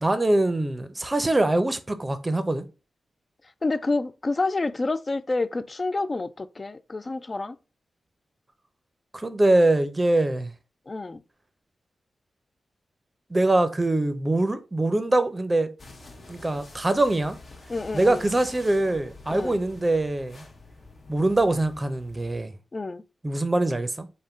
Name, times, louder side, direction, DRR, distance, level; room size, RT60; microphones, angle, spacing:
voice 1, 0.0-2.7 9.1-10.5 13.3-15.7 16.3-17.4 17.9-20.4 21.1-22.5 23.2-24.1, right 2 dB, 25° right, 0.5 m, -23 dB
voice 2, 3.6-7.6 10.9-11.2 17.7-18.2 19.3-19.6 22.7-23.0, left 3 dB, 40° left, 0.3 m, -28 dB
sound 1, 15.8-22.4, left 2 dB, 55° left, 0.8 m, -47 dB
3.6 x 2.1 x 4.3 m
cardioid pair, 60°, 0 cm